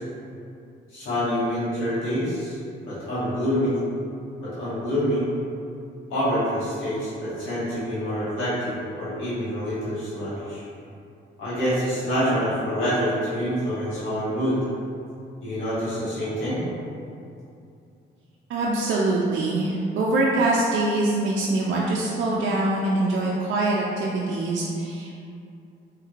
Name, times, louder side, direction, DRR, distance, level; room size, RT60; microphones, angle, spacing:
voice 1, 0.9-2.6 2.8-3.7 4.4-5.2 6.1-10.6 11.4-14.6 15.4-16.6, equal, 85° left, -12 dB, 1.2 m, -26 dB
voice 2, 18.5-25.2, right 2 dB, 75° right, -4 dB, 0.4 m, -24 dB
3.2 x 3.0 x 2.4 m, 2.6 s
cardioid pair, 90°, 20 cm